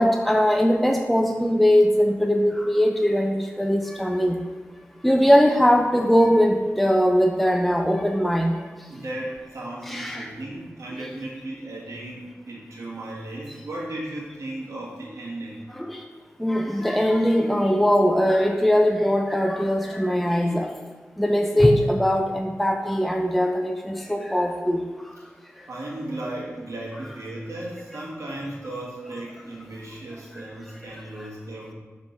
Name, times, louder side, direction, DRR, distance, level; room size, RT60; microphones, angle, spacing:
voice 1, 0.0-4.4 5.0-8.6 9.9-10.3 15.8-16.0 16.4-20.7 21.2-24.8, equal, ahead, 3 dB, 0.5 m, -20 dB
voice 2, 8.9-15.6 25.7-31.7, right 1 dB, 75° right, -4 dB, 1.6 m, -35 dB
6.9 x 3.6 x 3.9 m, 1.3 s
cardioid pair, 55°, 5 cm